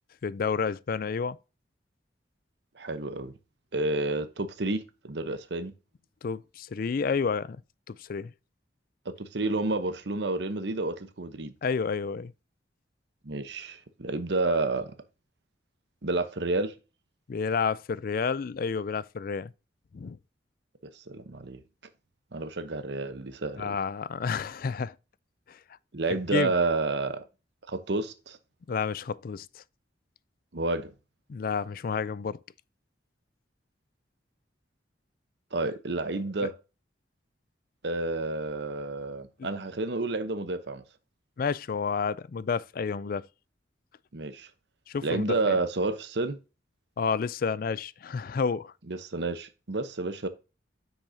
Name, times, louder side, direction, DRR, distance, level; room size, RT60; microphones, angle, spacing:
voice 1, 0.2-1.4 6.2-7.6 7.9-8.3 11.6-12.3 17.3-19.5 19.9-20.2 23.6-24.9 25.5-25.6 26.3-26.5 28.7-29.6 31.3-32.4 36.4-36.5 41.4-43.3 44.9-45.6 47.0-48.7, left 5 dB, 50° left, 0.4 m, -30 dB
voice 2, 2.8-3.3 3.7-5.7 9.2-11.5 13.2-14.9 16.0-16.7 20.9-21.6 22.3-23.8 25.9-27.2 27.7-28.4 30.5-30.9 35.5-36.5 37.8-40.8 44.1-44.5 45.0-46.4 48.9-50.3, right 2 dB, 65° right, 0.9 m, -30 dB
8.3 x 6.4 x 2.7 m
head